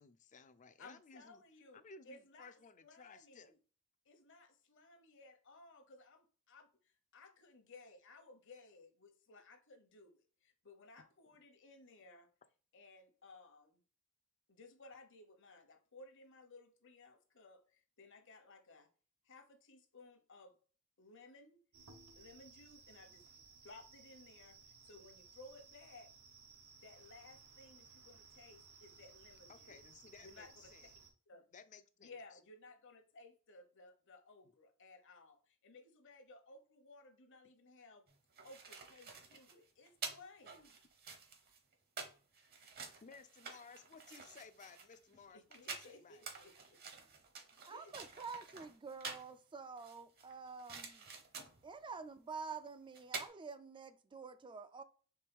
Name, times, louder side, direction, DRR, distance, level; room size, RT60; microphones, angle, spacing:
voice 1, 0.0-1.4 1.7-3.5 29.5-30.9 31.5-32.1 39.3-39.4 43.0-46.2, left 5 dB, 35° left, 0.5 m, -58 dB
voice 2, 0.8-2.5 2.8-3.5 4.1-6.7 7.1-12.3 12.7-13.8 14.5-18.9 19.2-20.5 21.0-21.6 22.2-26.1 26.8-29.8 30.2-30.7 31.3-31.5 32.0-38.0 38.4-40.8 45.3-46.8 47.7-47.9, left 3 dB, 60° left, 1.0 m, -59 dB
sound 1, 21.7-31.1, right 5 dB, 80° right, 1.0 m, -60 dB
sound 2, 38.1-49.3 49.8-51.7 52.7-52.8 52.9-53.3, right 4 dB, 45° right, 0.9 m, -49 dB
voice 3, 47.6-51.0 51.6-54.8, right 5 dB, 25° right, 0.4 m, -48 dB
4.6 x 3.1 x 3.5 m
head